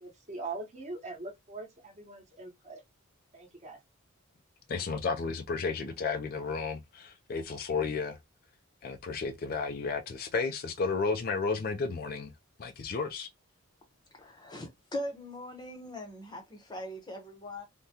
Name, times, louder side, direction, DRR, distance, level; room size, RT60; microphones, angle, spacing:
voice 1, 0.0-2.8 3.3-3.8, right 3 dB, 30° right, 0.9 m, -42 dB
voice 2, 4.7-8.2 8.8-12.3 12.6-13.3, left 4 dB, 40° left, 0.4 m, -32 dB
voice 3, 14.2-17.6, left 1 dB, 20° left, 0.7 m, -40 dB
3.5 x 2.1 x 2.7 m
head